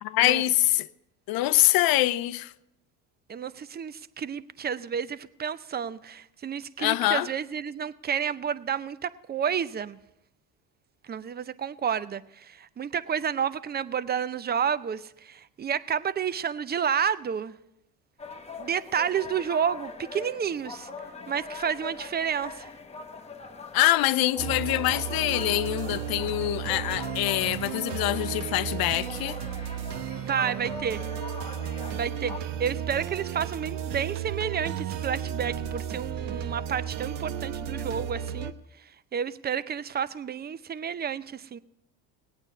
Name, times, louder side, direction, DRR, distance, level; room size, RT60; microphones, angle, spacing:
voice 1, 0.0-0.9 1.3-2.5 6.8-7.3 23.7-29.4, left 16 dB, 55° left, 0.7 m, -24 dB
voice 2, 3.3-10.0 11.1-17.5 18.6-20.9 21.3-22.7 30.2-31.0 31.9-38.5 39.1-41.6, right 7 dB, 25° right, 0.6 m, -30 dB
sound 1, 18.2-32.4, left 4 dB, 15° left, 1.0 m, -42 dB
sound 2, 24.4-38.5, right 9 dB, 70° right, 1.0 m, -34 dB
18.5 x 8.9 x 5.4 m
supercardioid pair, 80°, 42 cm